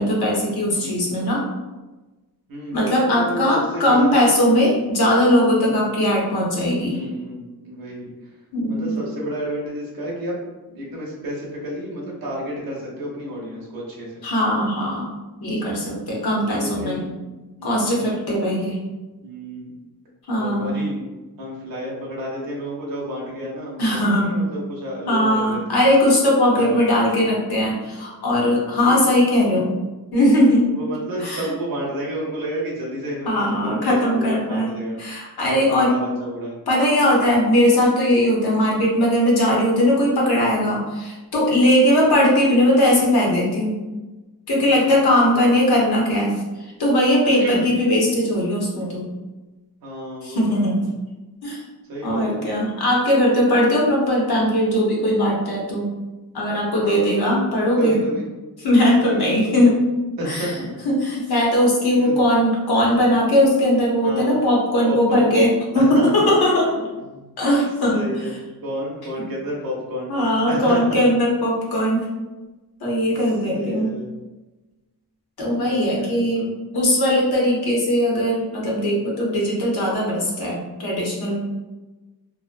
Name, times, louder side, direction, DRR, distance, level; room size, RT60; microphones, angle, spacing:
voice 1, 0.0-1.4 2.7-7.0 8.5-9.0 14.2-15.2 15.4-17.0 17.6-18.8 20.3-20.8 23.8-24.3 25.1-29.7 30.1-30.7 31.2-31.5 33.2-36.0 36.7-43.8 44.5-46.4 46.8-49.0 50.2-50.8 51.4-51.6 52.0-55.9 56.3-58.0 58.6-59.8 60.2-60.5 60.8-66.7 67.4-68.1 70.1-72.1 72.8-74.0 75.4-76.4 76.7-81.4, left 1 dB, 75° left, -3 dB, 0.8 m, -19 dB
voice 2, 0.7-1.1 2.5-4.2 4.5-4.7 5.7-5.9 6.8-8.3 8.7-10.4 10.7-14.2 16.3-17.2 17.6-18.0 19.2-19.8 20.3-21.0 21.4-25.9 26.5-26.8 28.8-29.1 29.5-29.6 30.7-35.0 35.5-36.6 41.7-42.0 44.6-45.6 47.4-47.7 49.8-50.7 51.9-52.4 56.8-57.2 57.8-58.2 59.0-59.7 60.2-60.7 62.0-62.2 62.7-62.8 64.0-64.4 64.9-65.3 65.8-66.5 67.0-67.3 67.9-70.1 70.4-71.0 73.1-73.2 73.5-74.1 75.6-76.5 78.6-78.9, equal, 65° right, -4 dB, 0.7 m, -31 dB
2.4 x 2.1 x 2.4 m, 1.1 s
wide cardioid pair, 105°, 38 cm